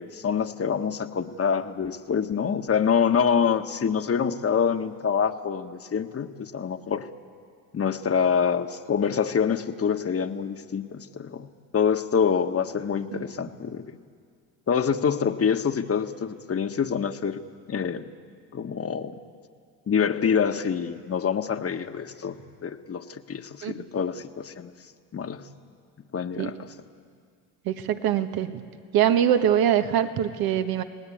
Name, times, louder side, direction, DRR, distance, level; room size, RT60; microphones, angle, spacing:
voice 1, 0.0-7.1 7.7-11.5 11.7-13.8 14.7-17.4 17.7-18.1 18.5-19.2 19.9-24.7 25.1-25.4 26.1-26.5, left 7 dB, 35° left, 8 dB, 1.4 m, -26 dB
voice 2, 27.6-28.6 28.9-30.8, right 10 dB, 70° right, 8 dB, 1.5 m, -23 dB
28.5 x 18.5 x 8.7 m, 2.2 s
supercardioid pair, 80°, 38 cm